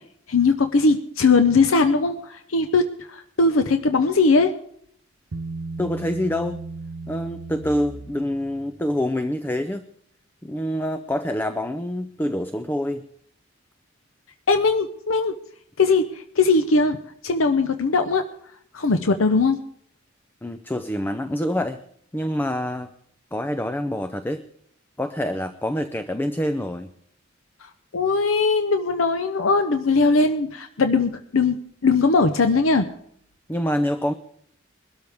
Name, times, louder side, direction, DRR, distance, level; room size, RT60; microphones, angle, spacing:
voice 1, 0.3-4.5 14.5-15.3 15.8-17.0 17.2-18.2 18.7-19.6 27.9-32.9, left 3 dB, 85° left, 8 dB, 0.8 m, -20 dB
Bass guitar, 5.3-8.7, right 3 dB, 75° right, 0.9 m, -35 dB
voice 2, 5.8-6.6 7.1-9.9 10.4-13.0 20.4-21.8 22.1-22.9 23.3-24.5 25.0-26.9 33.5-34.1, left 1 dB, 10° left, 10 dB, 0.5 m, -26 dB
22.0 x 13.0 x 3.5 m, 0.67 s
head